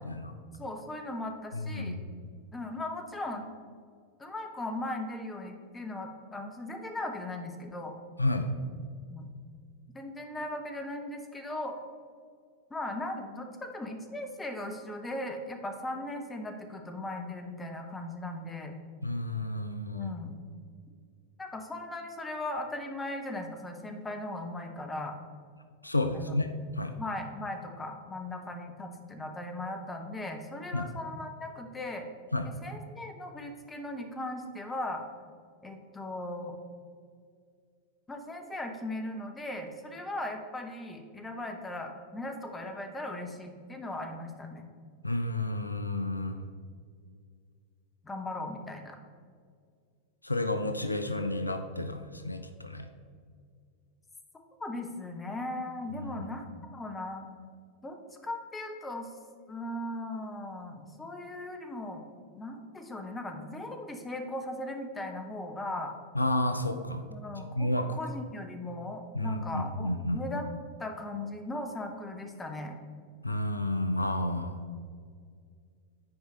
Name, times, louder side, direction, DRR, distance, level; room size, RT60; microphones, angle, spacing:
voice 1, 0.6-2.0 2.5-3.5 4.2-7.9 9.1-9.3 9.9-11.8 12.7-18.7 19.9-20.3 21.4-25.1 26.1-26.4 27.0-32.1 32.4-35.0 35.6-36.6 38.1-44.7 48.0-49.0 54.6-56.5 56.7-57.2 57.8-58.0 58.2-59.1 59.5-62.1 62.3-66.0 67.1-67.7 68.0-70.5 70.8-72.8, left 1 dB, 15° left, 4 dB, 1.0 m, -38 dB
voice 2, 1.5-2.0 8.2-8.5 19.0-20.1 25.8-26.5 26.8-26.9 30.7-30.9 32.3-32.5 45.0-46.4 50.2-52.9 56.0-56.3 66.1-67.0 67.5-67.9 69.1-70.2 73.2-74.6, left 1 dB, 85° left, 8 dB, 0.5 m, -31 dB
9.6 x 4.9 x 3.8 m, 2.1 s
figure-of-eight pair, 90°, 0 cm